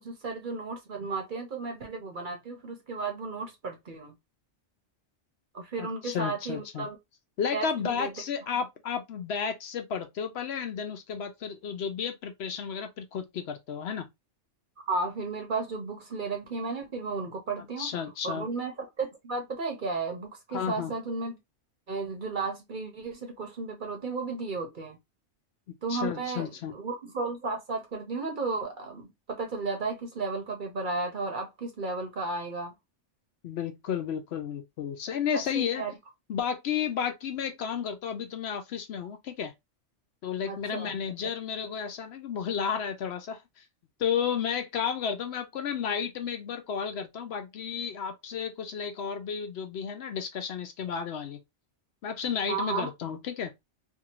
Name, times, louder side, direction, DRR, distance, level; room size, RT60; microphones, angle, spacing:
voice 1, 0.0-4.1 5.5-7.0 7.5-8.1 14.9-17.9 18.2-21.4 21.9-25.0 25.8-32.7 35.5-35.9 40.5-41.0 52.5-52.9, right 3 dB, 50° right, 0.8 m, -34 dB
voice 2, 5.8-6.9 7.4-14.1 17.6-18.5 20.5-20.9 25.7-26.7 33.4-35.8 36.3-39.5 40.2-43.4 44.0-51.4 52.0-53.5, left 7 dB, 65° left, 0.8 m, -32 dB
2.6 x 2.5 x 2.8 m
omnidirectional pair, 1.2 m